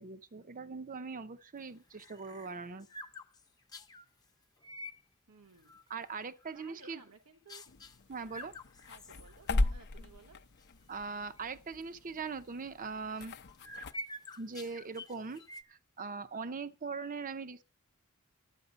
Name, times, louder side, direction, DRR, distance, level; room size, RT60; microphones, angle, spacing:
voice 1, 0.0-2.9 5.9-7.0 8.1-8.5 10.9-13.3 14.4-15.4 15.7-17.6, right 4 dB, 40° right, 0.6 m, -41 dB
sound 1, 1.6-4.1 4.6-5.0 5.5-6.1 6.4-7.1 7.5-8.0 8.3-9.7 10.1-10.2 10.6-10.8 11.4-11.5 12.9-15.6, left 1 dB, 20° left, 0.8 m, -48 dB
voice 2, 5.3-5.8 6.5-7.6 8.9-10.4, right 4 dB, 75° right, 1.1 m, -58 dB
sound 2, 7.7-13.9, left 2 dB, 50° left, 0.6 m, -38 dB
12.0 x 8.9 x 5.1 m
head